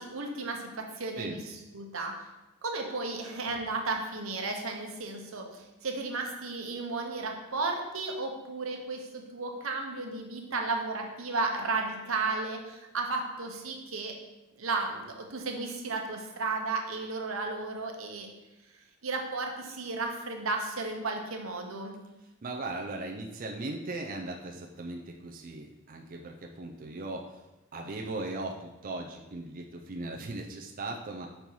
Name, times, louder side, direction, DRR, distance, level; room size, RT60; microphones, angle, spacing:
voice 1, 0.0-2.2 2.6-14.1 14.6-18.3 19.0-22.0, right 3 dB, 90° right, 2 dB, 1.0 m, -34 dB
voice 2, 22.4-27.2 27.7-31.3, right 2 dB, 45° right, 1 dB, 0.5 m, -38 dB
5.3 x 4.4 x 4.6 m, 1.0 s
head